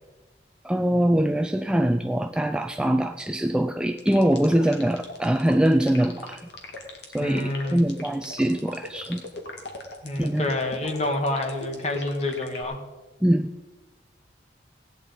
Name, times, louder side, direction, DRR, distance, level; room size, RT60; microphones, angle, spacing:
voice 1, 0.6-6.5 7.1-9.3 10.2-10.5 13.2-13.5, right 1 dB, 5° right, 7 dB, 0.4 m, -23 dB
sound 1, 4.0-12.6, left 2 dB, 60° left, 2.4 m, -39 dB
voice 2, 7.2-7.8 10.0-12.8, left 2 dB, 35° left, 4 dB, 1.8 m, -28 dB
17.5 x 10.0 x 5.3 m, 1.2 s
head